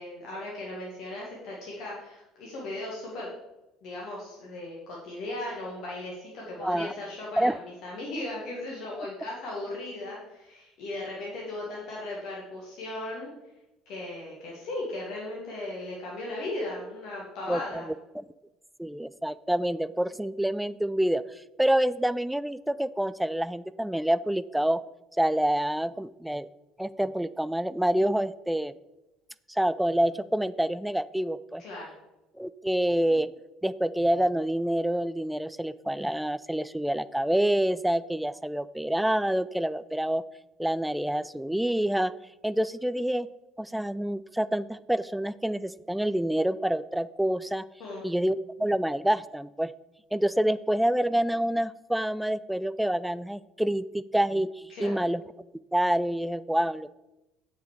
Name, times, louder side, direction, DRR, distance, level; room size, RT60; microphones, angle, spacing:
voice 1, 0.0-3.3 3.8-13.3 13.9-17.9 31.6-31.9 47.8-48.1 54.7-55.0, left 2 dB, 55° left, -3 dB, 1.8 m, -37 dB
voice 2, 6.6-6.9 7.4-7.6 17.5-17.8 18.1-18.2 18.8-24.8 25.2-26.5 26.8-28.7 29.5-31.6 32.4-33.3 33.6-40.2 40.6-42.1 42.4-43.3 43.6-47.6 48.0-49.7 50.1-55.2 55.7-56.9, right 1 dB, 5° right, 16 dB, 0.4 m, -27 dB
8.0 x 6.3 x 4.9 m, 0.97 s
figure-of-eight pair, 60°, 0 cm